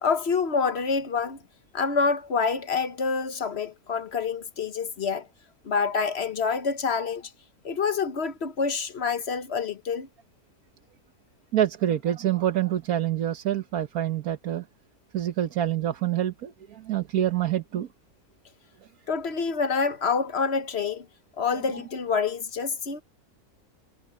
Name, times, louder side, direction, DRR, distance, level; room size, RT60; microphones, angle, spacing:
voice 1, 0.0-1.4 1.7-5.3 5.6-7.3 7.6-10.1 19.1-21.1 21.4-23.0, left 5 dB, 45° left, 1.3 m, -27 dB
voice 2, 11.5-14.6 15.1-17.9, right 11 dB, 70° right, 1.5 m, -26 dB
omnidirectional pair, 1.6 m